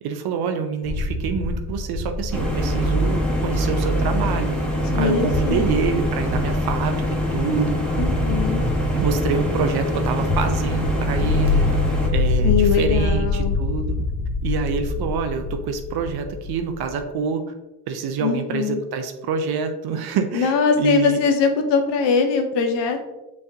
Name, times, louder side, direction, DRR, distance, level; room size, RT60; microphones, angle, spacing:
voice 1, 0.0-4.6 4.9-7.0 7.3-8.0 8.9-14.0 14.4-17.4 17.9-21.2, right 5 dB, 60° right, 7 dB, 0.6 m, -26 dB
sound 1, 0.8-17.0, left 2 dB, 20° right, 0.9 m, -25 dB
sound 2, 2.3-12.1, left 1 dB, ahead, 1.2 m, -25 dB
voice 2, 4.9-5.7 8.0-8.6 12.4-13.5 18.2-18.8 20.3-23.0, left 5 dB, 70° left, 5 dB, 0.8 m, -21 dB
5.5 x 3.4 x 2.7 m, 1.0 s
supercardioid pair, 75°, 44 cm